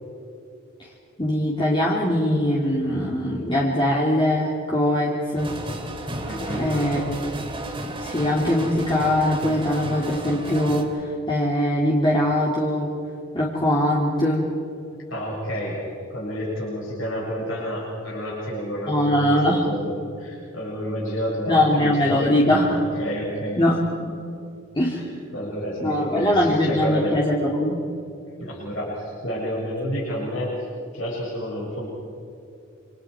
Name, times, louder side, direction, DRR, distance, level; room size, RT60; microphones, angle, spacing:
voice 1, 1.2-5.5 6.6-7.3 8.0-12.9 13.3-14.5 18.9-19.6 21.5-22.8 23.6-23.8 24.1-24.2 24.7-25.0 25.8-27.8, left 1 dB, 25° left, -5 dB, 2.8 m, -21 dB
sound 1, 5.4-10.8, right 1 dB, 25° right, 2.8 m, -32 dB
voice 2, 6.3-6.7 15.1-22.4 22.7-23.6 24.9-27.1 28.4-30.7 30.9-31.8, equal, 75° left, -5 dB, 7.3 m, -30 dB
28.0 x 27.5 x 4.9 m, 2.7 s
head